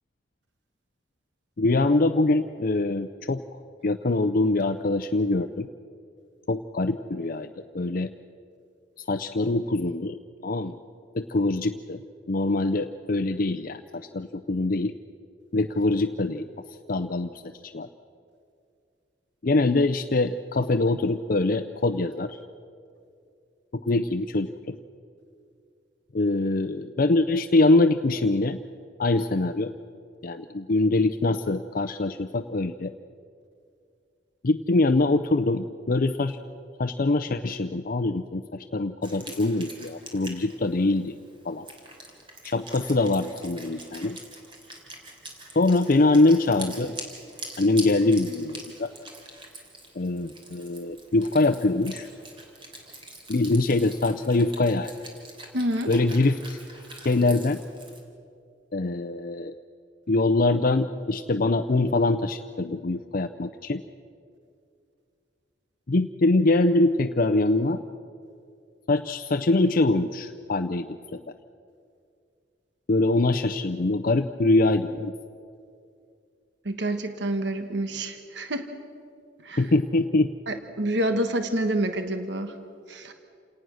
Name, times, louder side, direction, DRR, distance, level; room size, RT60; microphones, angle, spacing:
voice 1, 1.6-3.4 3.8-5.7 6.5-7.5 7.7-8.1 9.0-10.2 10.4-10.7 11.1-12.0 12.3-14.9 15.5-16.5 16.9-17.3 17.6-17.9 19.4-22.4 23.7-24.8 26.1-28.6 29.0-29.7 30.2-32.9 34.4-36.4 36.8-41.2 41.4-41.7 42.4-44.2 45.6-47.0 47.6-48.9 50.0-52.1 53.3-54.9 55.9-56.6 57.0-57.6 58.7-59.5 60.1-63.8 65.9-67.8 68.9-71.2 72.9-75.1 79.6-80.3, left 2 dB, 50° left, 8 dB, 0.6 m, -23 dB
Wind instrument woodwind instrument, 39.0-58.0, right 2 dB, 30° right, 3.4 m, -44 dB
voice 2, 55.5-55.9 76.6-78.7 79.4-79.6 80.5-82.5 82.9-83.1, right 1 dB, 65° right, 7 dB, 1.3 m, -28 dB
28.5 x 18.5 x 6.3 m, 2.4 s
head